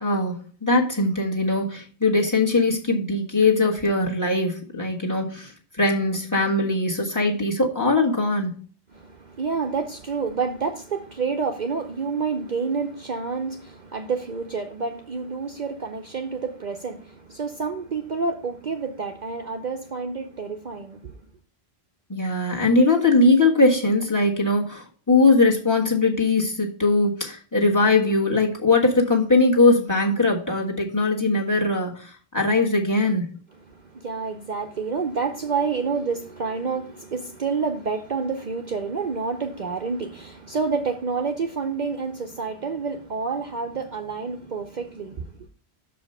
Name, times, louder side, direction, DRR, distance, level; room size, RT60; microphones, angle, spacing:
voice 1, 0.0-5.5 5.8-8.5 22.1-33.3, left 2 dB, 15° left, 1.5 m, -21 dB
voice 2, 8.9-21.1 33.7-45.3, right 5 dB, 50° right, 0.7 m, -29 dB
6.4 x 5.1 x 5.4 m
omnidirectional pair, 1.1 m